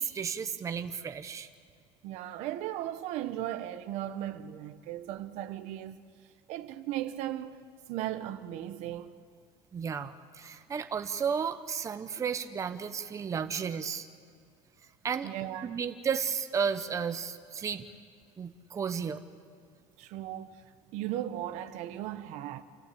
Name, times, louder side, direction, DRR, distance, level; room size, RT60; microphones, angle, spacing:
voice 1, 0.0-1.5 9.7-14.1 15.0-15.3 15.6-17.8 18.4-19.2, right 6 dB, 25° right, 1.0 m, -33 dB
voice 2, 2.0-6.0 6.5-7.6 7.9-9.1 15.2-15.8 20.0-20.6 20.9-22.6, right 12 dB, 70° right, 1.1 m, -37 dB
29.0 x 14.0 x 8.6 m
cardioid pair, 130°, 12 cm